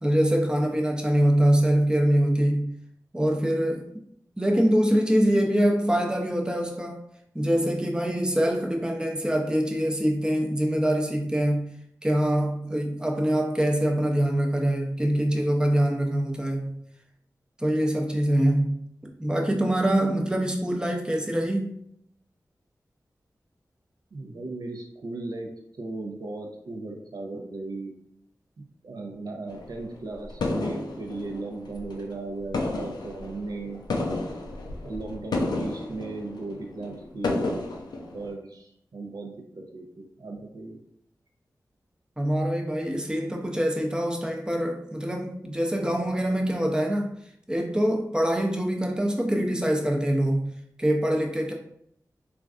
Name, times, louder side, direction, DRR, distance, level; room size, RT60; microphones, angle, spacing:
voice 1, 0.0-2.7 3.1-3.9 4.4-7.0 7.3-11.6 12.0-16.8 17.6-21.7 42.2-47.1 47.5-50.5 50.8-51.5, equal, 10° right, 1 dB, 0.5 m, -24 dB
voice 2, 24.1-25.5 25.8-27.9 28.6-33.8 34.8-37.6 38.1-40.8, right 2 dB, 70° right, 1 dB, 0.5 m, -36 dB
sound 1, 29.5-32.2 32.4-38.3, left 2 dB, 85° left, 0.4 m, -32 dB
3.2 x 2.4 x 2.3 m, 0.72 s
cardioid pair, 40°, 7 cm